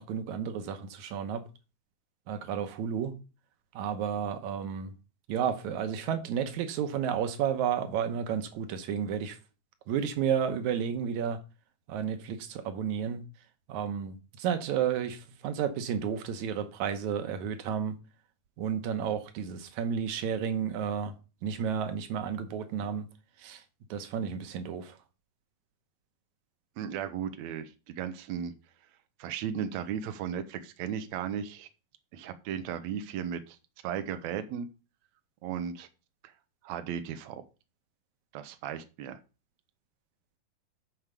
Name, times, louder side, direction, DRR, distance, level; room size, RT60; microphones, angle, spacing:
voice 1, 0.0-1.4 2.3-3.1 3.7-4.9 5.3-9.4 9.9-11.4 11.9-13.2 13.7-18.0 18.6-21.1 21.4-23.1 23.4-23.6 23.9-25.0, right 8 dB, 70° right, 1.9 m, -32 dB
voice 2, 26.8-28.5 29.2-31.7 32.1-33.6 33.8-34.7 35.4-35.9 36.2-36.3 36.6-37.4 38.3-39.2, right 8 dB, 85° right, 1.6 m, -35 dB
9.4 x 4.8 x 6.6 m
omnidirectional pair, 4.3 m